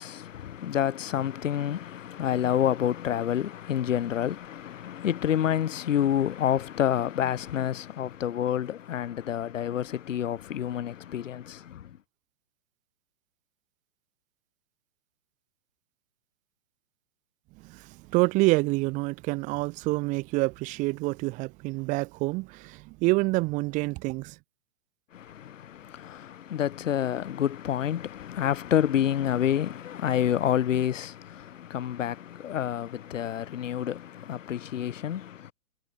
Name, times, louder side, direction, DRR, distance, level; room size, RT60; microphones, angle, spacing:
voice 1, 0.0-12.0 25.1-35.5, left 10 dB, 60° left, 3.0 m, -28 dB
voice 2, 17.6-24.4, right 23 dB, 15° right, 1.4 m, -27 dB
hypercardioid pair, 170°, 43 cm